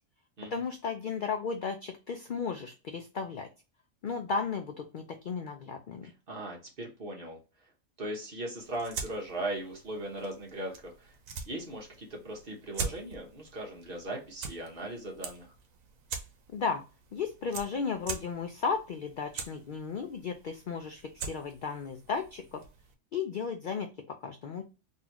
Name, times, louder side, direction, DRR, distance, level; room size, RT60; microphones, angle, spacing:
voice 1, 0.5-3.5 4.0-6.1 16.5-16.8 17.1-22.6 23.1-24.7, left 5 dB, 65° left, 6 dB, 0.5 m, -34 dB
voice 2, 6.3-7.4 8.0-11.1 11.5-15.5, right 1 dB, 45° right, -1 dB, 1.3 m, -38 dB
sound 1, 8.6-22.9, right 5 dB, 85° right, 1.1 m, -44 dB
3.9 x 2.8 x 2.9 m, 0.30 s
omnidirectional pair, 1.4 m